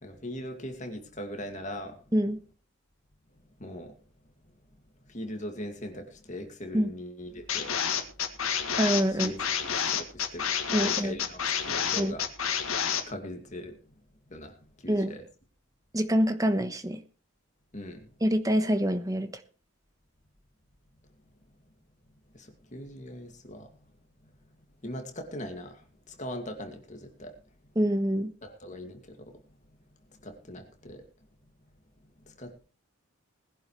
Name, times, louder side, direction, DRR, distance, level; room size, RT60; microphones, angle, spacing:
voice 1, 0.0-2.0 3.6-4.0 5.1-7.7 9.2-10.5 10.8-12.3 13.1-13.8 14.3-15.3 17.7-18.1 22.3-23.7 24.8-27.3 28.4-29.3 30.2-31.0 32.3-32.6, left 1 dB, 35° left, 5 dB, 2.3 m, -40 dB
sound 1, 7.5-13.0, left 8 dB, 80° left, 1.9 m, -29 dB
voice 2, 8.8-9.3 10.7-11.2 12.0-12.2 14.9-15.2 15.9-17.0 18.2-19.3 27.8-28.3, equal, 15° right, 9 dB, 1.1 m, -26 dB
20.0 x 11.0 x 3.2 m, 0.36 s
head